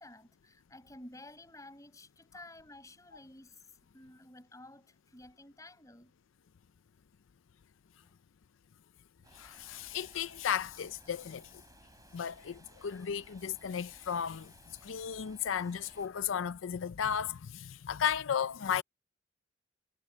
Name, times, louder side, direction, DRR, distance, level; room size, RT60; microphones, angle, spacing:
voice 1, 0.0-6.1 8.0-8.1, left 1 dB, 15° left, 6.7 m, -53 dB
sound 1, 9.2-16.1, right 2 dB, 20° right, 3.9 m, -60 dB
voice 2, 9.3-11.5 12.1-14.5 14.8-18.8, left 8 dB, 90° left, 0.5 m, -34 dB
head